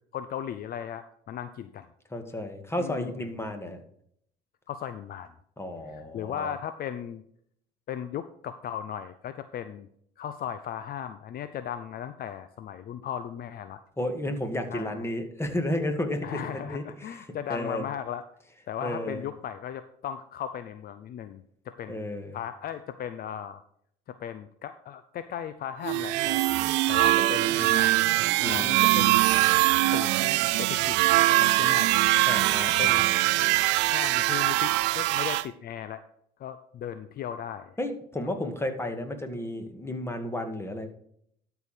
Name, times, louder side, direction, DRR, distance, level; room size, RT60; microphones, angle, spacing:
voice 1, 0.1-1.9 2.8-3.2 4.7-5.3 5.9-7.2 7.9-9.9 10.2-13.8 14.7-15.1 16.2-18.2 18.7-22.0 22.3-23.6 24.1-26.4 26.9-28.0 28.4-29.2 29.9-31.0 31.4-32.0 32.8-33.1 33.9-36.0 36.4-37.8 38.2-38.3, left 9 dB, 50° left, 11 dB, 0.6 m, -37 dB
voice 2, 2.1-3.8 5.6-6.6 14.0-17.2 17.5-17.8 18.8-19.2 21.9-22.4 28.4-29.2 32.3-33.0 37.8-40.9, left 1 dB, 10° left, 6 dB, 2.1 m, -32 dB
sound 1, 25.8-35.4, right 18 dB, 70° right, 0.5 m, -23 dB
12.5 x 4.7 x 5.1 m, 0.67 s
hypercardioid pair, 65°, 20 cm